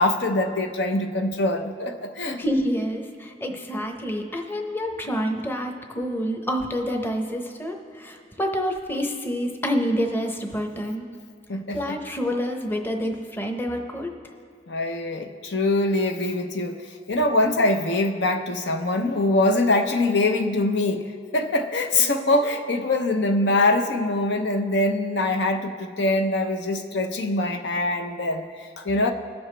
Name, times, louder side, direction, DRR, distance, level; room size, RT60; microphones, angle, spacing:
voice 1, 0.0-2.4 11.5-12.0 14.7-16.8 17.1-29.1, left 2 dB, 75° left, 5 dB, 0.7 m, -23 dB
voice 2, 2.4-11.1 11.7-14.1, equal, 10° left, 2 dB, 0.8 m, -27 dB
21.0 x 7.0 x 3.3 m, 2.2 s
head